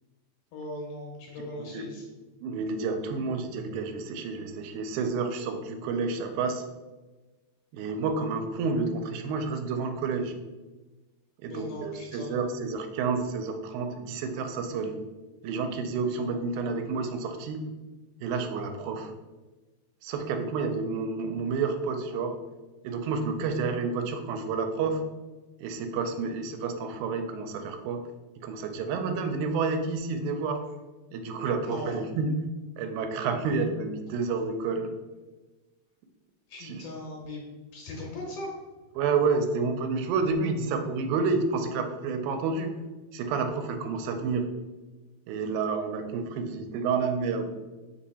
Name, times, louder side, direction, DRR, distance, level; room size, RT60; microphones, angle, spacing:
voice 1, 0.5-2.1 11.5-12.5 31.6-32.0 36.5-37.4 37.7-38.5, left 2 dB, 70° left, -1 dB, 1.8 m, -39 dB
voice 2, 2.4-6.6 7.7-10.3 11.4-15.0 15.4-17.7 18.2-19.1 20.0-22.4 22.8-25.0 25.6-28.0 28.4-30.6 31.1-32.3 32.8-34.9 36.6-36.8 39.0-42.7 43.1-44.5 45.3-47.5, right 4 dB, 85° right, 6 dB, 2.0 m, -29 dB
4.6 x 2.7 x 4.1 m, 1.2 s
omnidirectional pair, 3.4 m